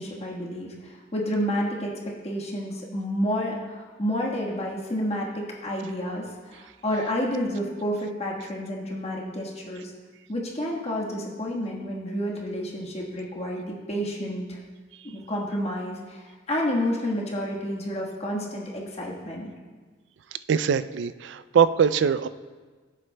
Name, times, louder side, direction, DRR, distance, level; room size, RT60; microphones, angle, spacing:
voice 1, 0.0-9.9 10.3-14.6 15.1-19.5, equal, 35° left, -3 dB, 1.4 m, -30 dB
voice 2, 20.5-22.3, right 7 dB, 70° right, 14 dB, 0.3 m, -22 dB
14.5 x 7.6 x 2.2 m, 1.4 s
head